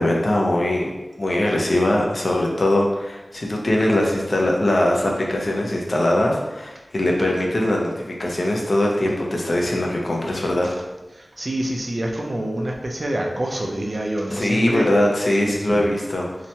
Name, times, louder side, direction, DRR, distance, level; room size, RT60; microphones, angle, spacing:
voice 1, 0.0-10.8 14.3-16.4, left 1 dB, 60° left, -1 dB, 0.5 m, -21 dB
voice 2, 11.1-14.9 15.5-15.9, right 1 dB, 50° right, 0 dB, 0.4 m, -27 dB
2.8 x 2.1 x 2.7 m, 1.0 s
wide cardioid pair, 70°, 0 cm